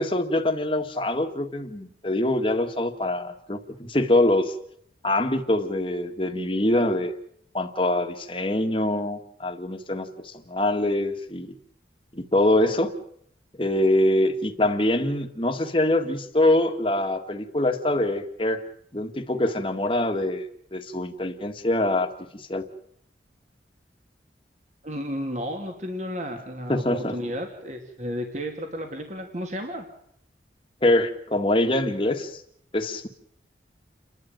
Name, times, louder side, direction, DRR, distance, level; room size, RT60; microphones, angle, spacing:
voice 1, 0.0-4.5 5.0-7.2 7.5-11.5 12.1-12.9 13.6-18.6 18.9-20.5 20.7-22.7 26.7-27.2 30.8-32.4 32.7-33.1, left 1 dB, 30° left, 6 dB, 1.9 m, -24 dB
voice 2, 24.8-29.9, equal, 40° right, 3 dB, 2.8 m, -33 dB
30.0 x 12.0 x 9.1 m, 0.70 s
head